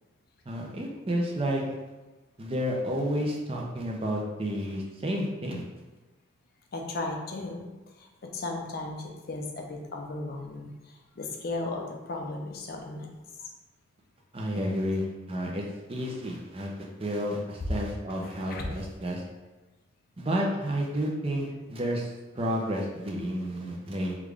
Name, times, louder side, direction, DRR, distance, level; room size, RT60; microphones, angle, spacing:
voice 1, 0.5-1.6 2.4-5.6 14.3-16.7 17.0-19.2 20.2-24.2, equal, 30° right, -1 dB, 0.5 m, -31 dB
voice 2, 6.7-7.7 8.0-13.5 18.1-18.7, left 2 dB, 50° left, 2 dB, 0.4 m, -36 dB
3.6 x 2.4 x 3.2 m, 1.2 s
head